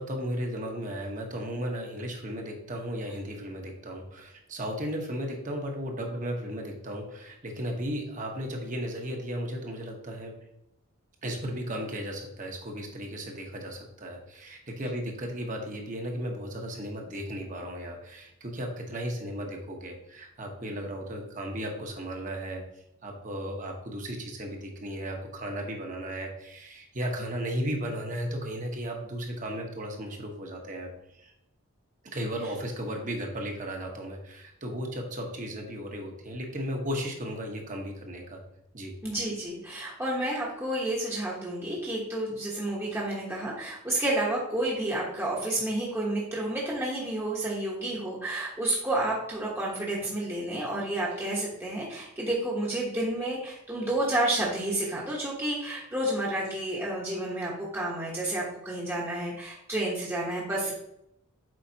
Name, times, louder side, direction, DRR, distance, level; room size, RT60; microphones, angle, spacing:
voice 1, 0.0-10.4 11.2-31.3 32.1-38.4 38.7-38.9, equal, 35° right, 2 dB, 1.1 m, -35 dB
voice 2, 39.0-60.7, right 1 dB, 10° right, -5 dB, 1.1 m, -30 dB
7.6 x 4.9 x 2.8 m, 0.78 s
head